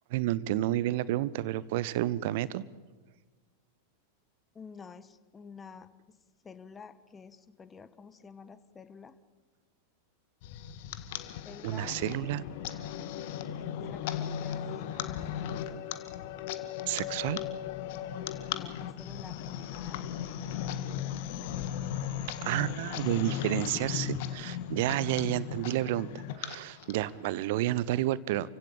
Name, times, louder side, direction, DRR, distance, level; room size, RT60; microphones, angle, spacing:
voice 1, 0.1-2.6 11.6-12.4 16.9-17.4 22.4-26.1 26.3-28.6, right 15 dB, 50° right, 20 dB, 0.9 m, -30 dB
voice 2, 4.5-6.2 6.4-9.2 11.4-12.0 13.6-15.8 18.5-20.0, left 5 dB, 20° left, 13 dB, 1.4 m, -50 dB
sound 1, 10.4-27.3, left 10 dB, 50° left, 1.7 m, -37 dB
28.5 x 16.0 x 8.7 m, 1.3 s
figure-of-eight pair, 90°, 0 cm